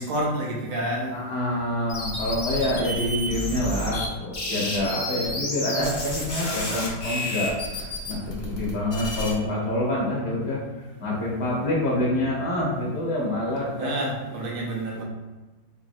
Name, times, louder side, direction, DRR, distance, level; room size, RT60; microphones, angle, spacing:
voice 1, 0.0-1.1 13.8-15.0, right 1 dB, 85° right, -3 dB, 1.8 m, -28 dB
voice 2, 1.1-7.8 8.1-10.6 11.0-14.0, left 1 dB, 35° left, -5 dB, 1.2 m, -27 dB
sound 1, 1.9-4.1 4.3-9.3, left 1 dB, 65° left, 0.4 m, -30 dB
4.4 x 3.0 x 2.6 m, 1.2 s
omnidirectional pair, 2.2 m